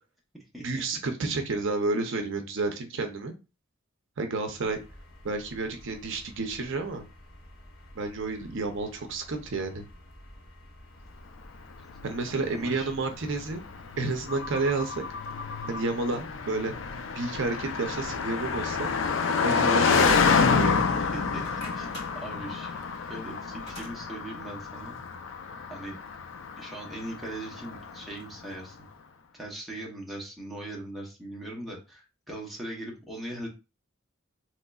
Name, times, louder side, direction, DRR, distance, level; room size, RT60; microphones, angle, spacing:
voice 1, 0.6-3.3 4.2-4.8 5.2-7.1 7.9-9.9 12.0-13.6 14.0-15.0 15.7-16.7 17.1-18.9 19.4-20.9, right 3 dB, 65° right, 5 dB, 0.6 m, -30 dB
sound 1, 4.6-19.1, left 3 dB, 80° left, 1.0 m, -47 dB
Car passing by, 11.9-28.3, left 5 dB, 65° left, 0.4 m, -28 dB
voice 2, 12.4-13.1 21.1-21.4 21.8-21.9 22.1-24.9 25.7-26.0 26.6-28.8 29.3-33.5, right 1 dB, ahead, -3 dB, 0.9 m, -40 dB
sound 2, 19.2-20.9 21.3-23.9, equal, 30° left, 1.8 m, -43 dB
3.8 x 3.0 x 2.3 m, 0.29 s
head